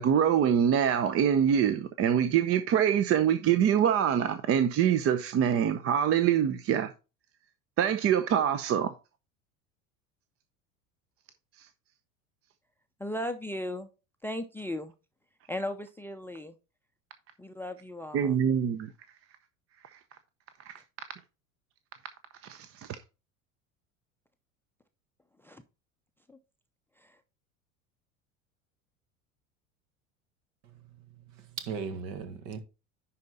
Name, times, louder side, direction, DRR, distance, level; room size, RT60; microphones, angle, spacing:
voice 1, 0.0-6.9 7.8-8.9 18.1-18.9 20.7-20.8 22.5-22.9, right 9 dB, 35° right, 0.7 m, -25 dB
voice 2, 13.0-13.9 14.2-14.9 15.5-16.5 17.4-18.4 25.4-25.6 26.3-26.4 27.0-27.2, left 1 dB, 5° left, 0.6 m, -36 dB
voice 3, 30.6-32.6, right 6 dB, 60° right, 1.7 m, -39 dB
10.5 x 4.2 x 4.0 m
hypercardioid pair, 75°, 42 cm